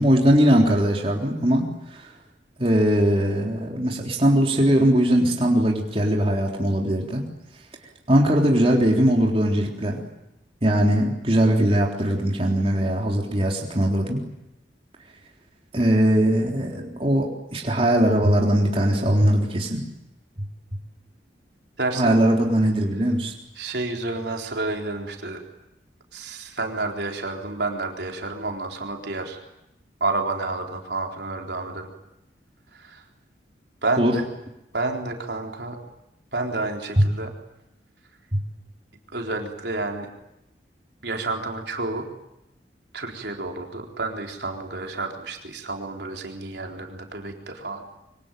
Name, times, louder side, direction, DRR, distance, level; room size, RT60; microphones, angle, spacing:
voice 1, 0.0-2.1 2.6-7.2 8.1-10.0 10.6-14.2 15.7-19.8 20.4-20.5 21.9-23.3 34.0-34.2 37.0-37.1 38.3-38.4, right 1 dB, 30° right, 0 dB, 3.7 m, -20 dB
voice 2, 21.8-22.2 23.6-25.4 26.1-29.4 30.0-31.9 32.7-33.0 33.8-34.2 34.7-35.8 36.3-37.3 39.1-40.1 41.0-42.0 42.9-47.8, right 3 dB, 65° right, 2 dB, 4.1 m, -30 dB
25.5 x 24.5 x 9.3 m, 0.89 s
head